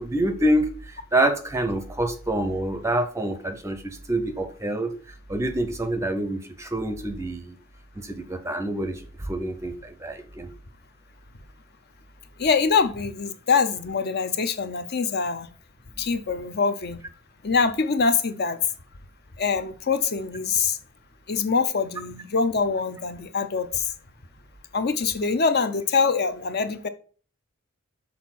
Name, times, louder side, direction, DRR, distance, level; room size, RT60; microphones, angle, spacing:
voice 1, 0.0-4.9 5.3-7.6 8.0-10.5, right 1 dB, 15° right, 0.6 m, -27 dB
voice 2, 12.4-15.5 16.0-17.0 17.4-18.6 19.4-20.8 21.3-23.9 24.7-26.9, left 5 dB, 50° left, 0.7 m, -24 dB
6.5 x 4.1 x 5.9 m
head